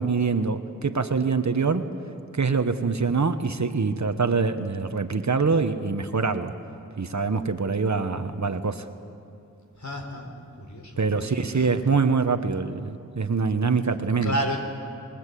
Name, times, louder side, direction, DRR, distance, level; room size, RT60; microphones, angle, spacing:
voice 1, 0.0-1.9 2.3-6.5 7.0-8.9 11.0-14.3, right 4 dB, 55° right, 9 dB, 1.2 m, -24 dB
voice 2, 9.8-10.3 10.6-11.7 14.2-14.6, equal, 55° left, 3 dB, 4.2 m, -31 dB
27.5 x 21.0 x 8.4 m, 2.6 s
wide cardioid pair, 80°, 33 cm